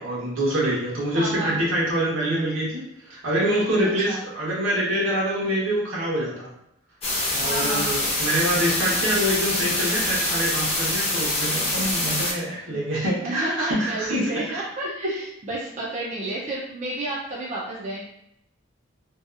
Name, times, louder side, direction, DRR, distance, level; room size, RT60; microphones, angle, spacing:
voice 1, 0.0-6.5 7.3-14.6, right 1 dB, 75° right, -5 dB, 0.9 m, -25 dB
voice 2, 1.1-1.6 4.1-4.2 7.4-7.9 13.2-18.0, right 2 dB, 35° right, -5 dB, 0.4 m, -31 dB
sound 1, 7.0-12.3, left 1 dB, 30° left, 0.6 m, -25 dB
2.7 x 2.3 x 2.4 m, 0.79 s
head